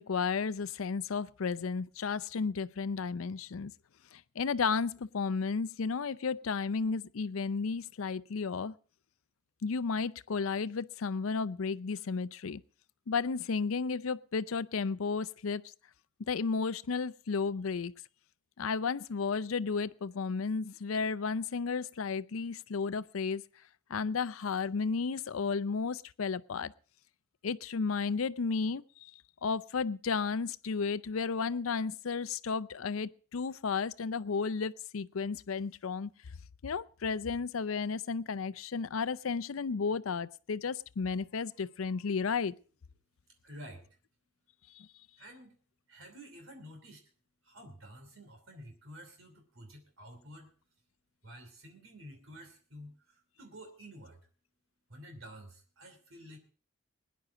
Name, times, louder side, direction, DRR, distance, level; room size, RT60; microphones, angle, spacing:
voice 1, 0.0-3.7 4.1-8.7 9.6-12.6 13.1-15.6 16.3-17.9 18.6-23.4 23.9-26.7 27.4-36.1 36.6-42.5 44.7-44.9, left 5 dB, 85° left, 0.5 m, -33 dB
voice 2, 43.4-44.0 45.2-45.5 45.9-47.1 47.4-50.5 51.2-54.2 54.9-56.4, equal, 80° right, 2.9 m, -50 dB
21.0 x 10.5 x 3.8 m
head